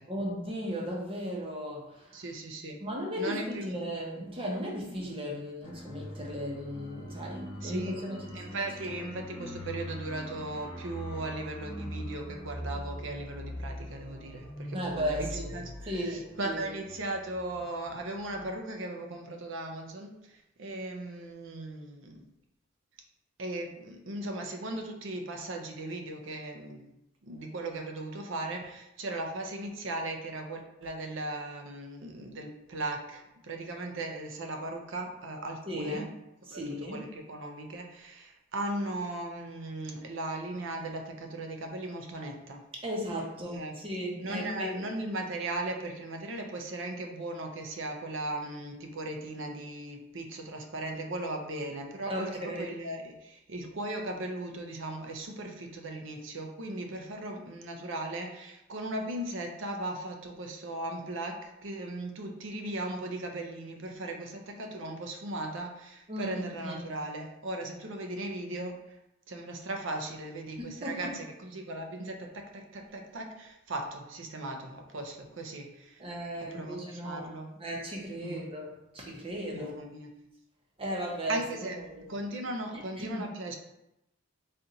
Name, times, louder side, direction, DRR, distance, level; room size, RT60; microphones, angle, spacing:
voice 1, 0.1-2.2 2.8-8.2 14.7-15.5 15.9-16.7 35.7-36.1 36.5-37.0 42.8-44.9 52.1-52.7 66.1-66.9 70.6-71.1 76.0-77.3 77.6-79.7 80.8-82.1 83.0-83.3, equal, 25° right, -2 dB, 0.8 m, -36 dB
voice 2, 2.1-2.8 3.2-3.7 7.6-8.0 8.3-22.3 23.4-26.9 27.2-36.1 36.5-42.6 43.4-43.8 44.2-69.0 69.3-76.0 76.4-77.5 78.2-78.5 79.5-80.2 81.3-83.5, right 2 dB, 65° right, 3 dB, 0.6 m, -38 dB
sound 1, 5.6-18.0 18.3-18.4, equal, 20° left, 1.0 m, -42 dB
4.2 x 2.5 x 3.8 m, 0.88 s
head